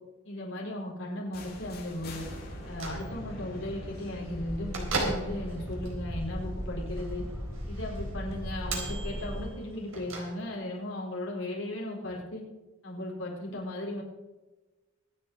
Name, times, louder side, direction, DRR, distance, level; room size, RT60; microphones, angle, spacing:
voice 1, 0.2-2.2 2.7-7.2 7.7-12.4 12.8-14.0, left 1 dB, 70° left, -2 dB, 4.3 m, -36 dB
sound 1, 1.3-7.2, equal, 50° left, 5.0 m, -44 dB
Bell / Microwave oven, 2.5-10.8, right 2 dB, 90° right, 4.0 m, -39 dB
sound 2, 4.2-9.4, equal, 20° right, 4.7 m, -37 dB
24.5 x 8.4 x 4.1 m, 1.2 s
head